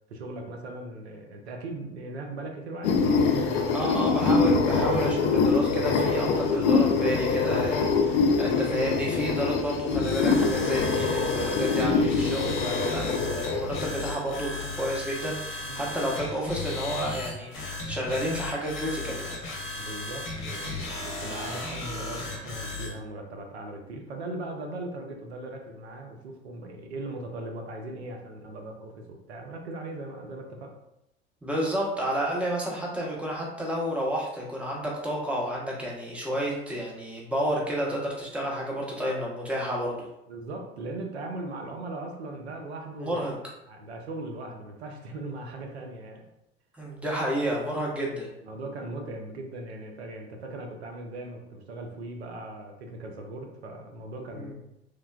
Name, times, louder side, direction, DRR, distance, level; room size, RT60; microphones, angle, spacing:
voice 1, 0.1-4.1 7.8-7.9 15.6-15.8 19.8-30.8 40.3-43.3 43.7-46.2 48.4-54.6, right 2 dB, 90° right, 2 dB, 0.5 m, -39 dB
sound 1, 2.8-14.1, left 4 dB, 65° left, 0.5 m, -24 dB
voice 2, 3.7-19.4 31.4-40.1 43.0-43.3 46.7-48.3 54.3-54.5, equal, 5° right, -3 dB, 0.8 m, -30 dB
sound 2, 9.9-23.0, left 2 dB, 40° left, 0.8 m, -35 dB
3.1 x 2.1 x 2.3 m, 0.85 s
hypercardioid pair, 70°, 32 cm